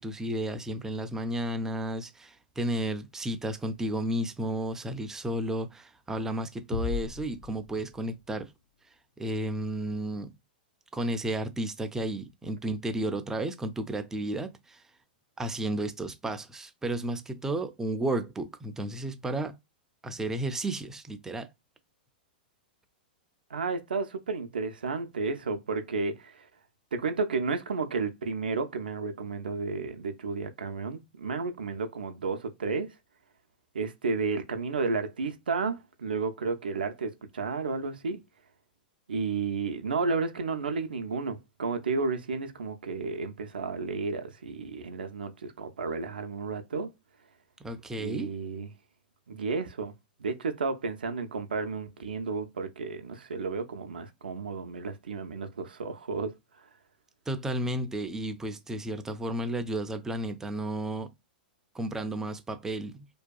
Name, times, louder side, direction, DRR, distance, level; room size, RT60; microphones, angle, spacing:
voice 1, 0.0-8.5 9.2-10.3 10.9-14.8 15.4-19.6 20.0-21.5 47.6-48.3 57.3-61.1 61.7-63.1, right 1 dB, 10° right, 0.3 m, -32 dB
sound 1, 6.7-8.4, left 5 dB, 60° left, 0.6 m, -36 dB
voice 2, 23.5-26.5 26.9-32.9 33.7-38.2 39.1-46.9 48.0-48.7 49.3-49.9 50.2-56.3, right 4 dB, 80° right, 0.3 m, -32 dB
2.6 x 2.2 x 2.2 m
hypercardioid pair, 105°, 5 cm